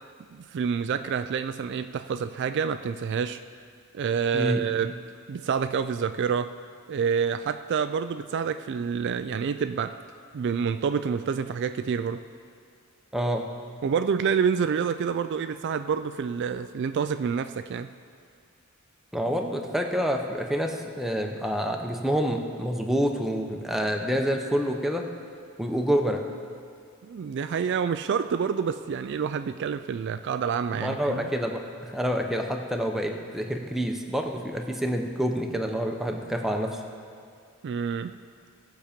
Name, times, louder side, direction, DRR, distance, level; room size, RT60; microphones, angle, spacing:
voice 1, 0.3-3.4 3.9-4.9 5.3-6.5 6.9-10.0 10.3-12.2 13.8-17.9 27.0-31.2 37.6-38.2, right 6 dB, 55° right, 10 dB, 0.3 m, -28 dB
voice 2, 13.1-13.4 19.1-25.0 25.6-26.3 30.8-36.8, equal, ahead, 2 dB, 0.8 m, -27 dB
18.0 x 7.0 x 5.1 m, 2.2 s
head